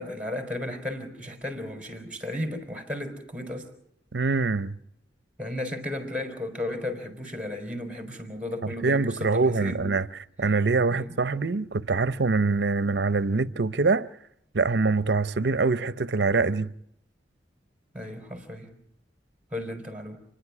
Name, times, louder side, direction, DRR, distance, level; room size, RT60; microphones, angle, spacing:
voice 1, 0.0-3.7 5.4-9.8 10.9-11.1 17.9-18.7 19.5-20.2, left 1 dB, 5° right, 4.1 m, -34 dB
voice 2, 4.1-4.7 8.6-10.1 10.4-14.1 14.5-16.7, right 3 dB, 70° right, 0.7 m, -24 dB
30.0 x 10.5 x 9.7 m
head